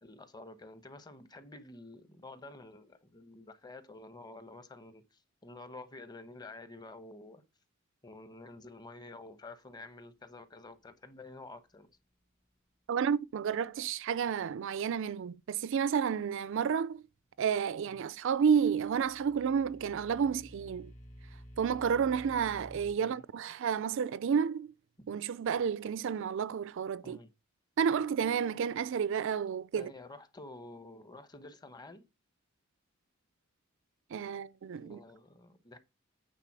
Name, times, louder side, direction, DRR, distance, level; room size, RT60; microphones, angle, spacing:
voice 1, 0.0-7.4 8.0-12.0 17.9-18.0 23.0-23.2 25.0-25.1 27.0-27.3 29.7-32.1 34.7-35.8, left 2 dB, 20° left, 1.0 m, -50 dB
voice 2, 12.9-17.0 17.4-20.9 21.6-24.7 25.1-27.2 27.8-29.9 34.1-35.0, right 7 dB, 65° right, 0.4 m, -31 dB
sound 1, 18.6-22.9, equal, 40° left, 2.0 m, -52 dB
9.1 x 3.9 x 6.0 m
head